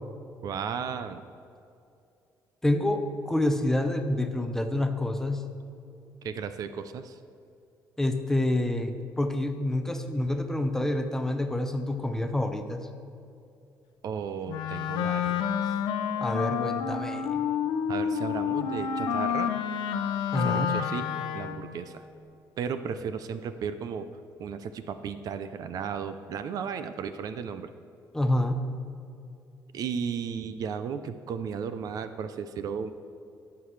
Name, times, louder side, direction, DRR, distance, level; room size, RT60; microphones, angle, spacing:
voice 1, 0.4-1.2 6.2-7.2 14.0-15.7 17.9-19.5 20.4-21.1 21.3-22.0 22.6-24.1 24.4-27.7 29.7-32.9, right 7 dB, 60° right, 11 dB, 0.5 m, -34 dB
voice 2, 2.6-5.5 8.0-12.9 16.2-17.5 20.3-20.8 28.1-28.7, left 1 dB, 5° left, 7 dB, 0.6 m, -28 dB
Wind instrument woodwind instrument, 14.5-21.7, left 8 dB, 90° left, 0.6 m, -29 dB
16.5 x 6.9 x 3.2 m, 2.5 s
cardioid pair, 130°, 7 cm